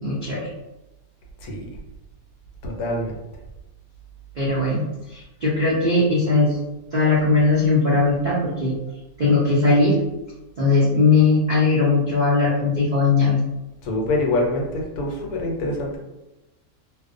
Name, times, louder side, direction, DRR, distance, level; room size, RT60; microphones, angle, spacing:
voice 1, 0.0-0.5 4.4-6.6 6.9-8.7 9.2-10.0 10.6-13.4, left 3 dB, 80° right, -7 dB, 0.4 m, -19 dB
voice 2, 2.6-3.1 13.8-16.0, left 2 dB, 90° left, 1 dB, 1.1 m, -25 dB
2.5 x 2.0 x 2.4 m, 0.99 s
omnidirectional pair, 1.6 m